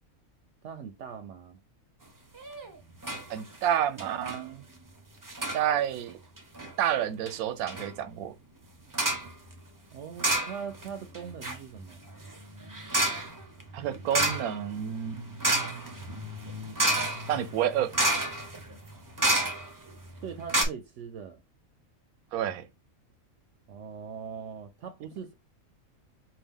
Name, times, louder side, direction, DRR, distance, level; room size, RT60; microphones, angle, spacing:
voice 1, 0.6-1.6 9.9-12.0 20.2-21.4 23.7-25.3, right 7 dB, 65° right, 0.8 m, -41 dB
sound 1, 2.4-2.7 3.0-3.3 3.5-3.6 4.0-4.4 5.2-5.6 6.4-6.7 7.3-7.4 7.7-7.9 8.9-9.3 10.2-10.9 11.1-19.9 20.2-20.3 20.5-20.6, right 1 dB, 25° right, 0.4 m, -30 dB
voice 2, 3.3-4.6 5.5-6.2 6.8-8.3 13.7-15.2 17.3-18.0 22.3-22.7, right 10 dB, 90° right, 1.1 m, -29 dB
5.5 x 2.4 x 3.5 m
omnidirectional pair, 1.5 m